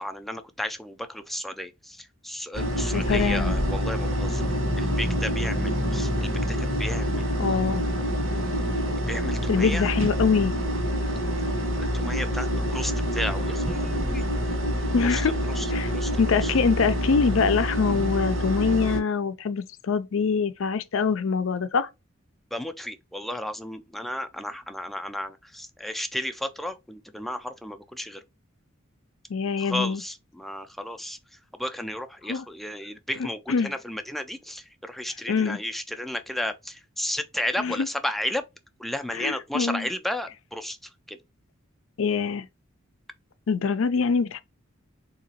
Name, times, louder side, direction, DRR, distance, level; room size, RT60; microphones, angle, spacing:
voice 1, 0.0-4.5 4.8-7.5 9.0-9.9 11.8-14.3 14.8-15.2 15.6-16.5 22.5-28.2 29.6-31.2 31.6-38.4 38.8-40.8 41.1-41.2, left 1 dB, ahead, 0.4 m, -33 dB
Air Conditioning Ambient sound loop, 2.5-19.0, equal, 85° right, 1.6 m, -26 dB
voice 2, 2.9-3.5 7.4-7.9 9.5-10.5 14.9-15.3 15.7-15.9 16.2-21.9 29.3-30.0 32.3-32.4 33.5-33.7 35.3-35.6 37.6-37.9 39.1-39.9 42.0-42.5 43.5-44.4, left 5 dB, 70° left, 0.5 m, -24 dB
3.8 x 2.8 x 2.8 m
head